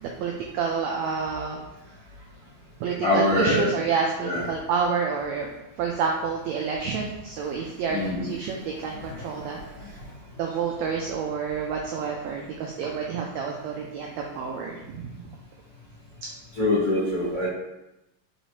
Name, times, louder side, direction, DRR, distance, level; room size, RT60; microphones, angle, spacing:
voice 1, 0.0-1.6 2.8-5.5 5.8-9.6 10.4-15.3, right 5 dB, 85° right, 0 dB, 1.5 m, -29 dB
voice 2, 3.0-3.7 4.2-4.4 7.9-8.3 8.9-9.8 16.5-17.5, left 1 dB, 55° left, -12 dB, 1.0 m, -25 dB
4.5 x 4.0 x 2.8 m, 0.94 s
omnidirectional pair, 3.6 m